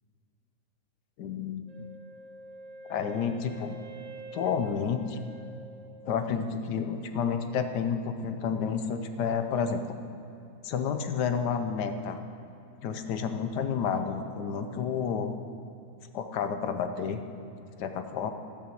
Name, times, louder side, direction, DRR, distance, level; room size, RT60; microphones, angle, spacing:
voice 1, 1.2-1.6 2.9-3.8 4.3-5.2 6.0-9.8 10.6-12.2 12.8-15.3 16.1-17.2 17.8-18.3, left 6 dB, 75° left, 7 dB, 1.3 m, -30 dB
Wind instrument woodwind instrument, 1.7-6.5, right 2 dB, 50° right, 1.9 m, -47 dB
12.5 x 5.8 x 7.6 m, 2.8 s
omnidirectional pair, 1.8 m